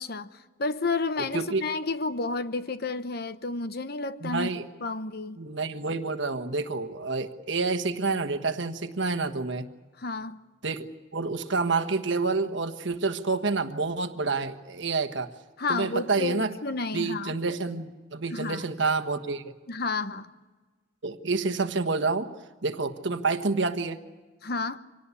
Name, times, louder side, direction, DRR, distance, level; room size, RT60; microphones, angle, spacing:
voice 1, 0.0-4.5 4.8-5.4 10.0-10.4 15.6-17.3 18.3-18.7 19.7-20.3 24.4-24.8, left 3 dB, 50° left, 11 dB, 0.9 m, -31 dB
voice 2, 4.2-4.6 5.4-9.7 10.6-10.9 11.1-15.3 15.7-16.5 16.9-19.4 21.0-22.3 22.6-24.0, right 3 dB, 60° right, 9 dB, 1.3 m, -28 dB
25.5 x 18.5 x 8.4 m, 1.3 s
head